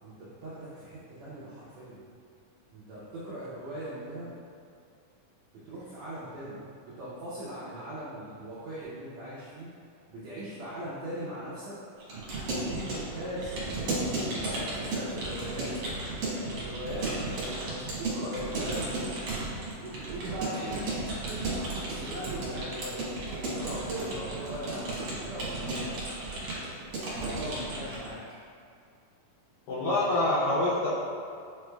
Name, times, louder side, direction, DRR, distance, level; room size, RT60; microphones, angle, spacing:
voice 1, 0.0-2.0 2.7-4.3 5.6-6.6 6.8-9.7 10.1-11.7 12.3-15.7 16.3-17.1 17.4-19.3 19.8-23.1 23.5-26.2 27.0-28.2, right 1 dB, 85° right, -9 dB, 1.4 m, -40 dB
Keyboard (musical) / Computer keyboard, 12.0-28.1, right 2 dB, 65° right, 2.1 m, -34 dB
voice 2, 29.7-30.9, left 2 dB, 85° left, -9 dB, 1.6 m, -26 dB
6.3 x 3.1 x 2.2 m, 2.3 s
omnidirectional pair, 4.0 m